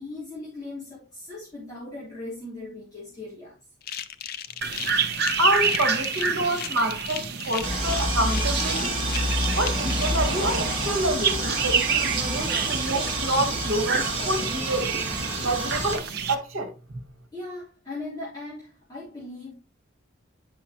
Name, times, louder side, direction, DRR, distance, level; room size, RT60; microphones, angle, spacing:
voice 1, 0.0-3.6 17.3-19.5, left 2 dB, 20° left, 3.5 m, -38 dB
sound 1, 3.8-10.2, left 10 dB, 45° left, 0.5 m, -36 dB
sound 2, 4.6-16.3, right 6 dB, 50° right, 0.8 m, -29 dB
voice 2, 5.4-9.1 9.5-14.9 15.4-17.0, right 1 dB, 75° right, 1.4 m, -27 dB
sound 3, 7.6-16.0, right 1 dB, 25° right, 2.3 m, -28 dB
9.6 x 5.8 x 2.9 m
head